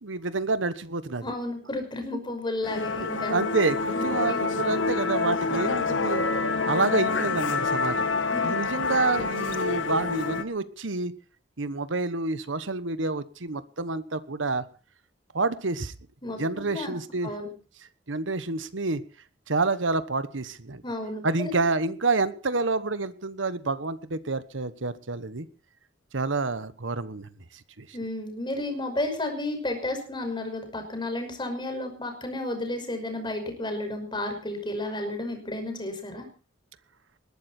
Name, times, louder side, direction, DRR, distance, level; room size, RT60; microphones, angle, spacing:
voice 1, 0.0-1.2 3.0-6.2 6.7-8.1 8.4-11.1 11.6-14.6 15.3-15.9 16.4-17.3 18.1-19.0 19.5-20.8 21.2-25.5 26.1-27.3 27.8-27.9, right 3 dB, 90° right, 14 dB, 1.2 m, -28 dB
voice 2, 1.2-3.3 3.9-4.0 4.3-4.4 8.3-8.5 16.2-16.4 16.7-16.9 17.2-17.5 20.8-21.5 27.9-36.3, left 1 dB, 25° left, 5 dB, 5.8 m, -32 dB
Musical instrument, 2.6-10.4, left 4 dB, 85° left, 1.5 m, -27 dB
20.5 x 13.0 x 4.4 m, 0.38 s
head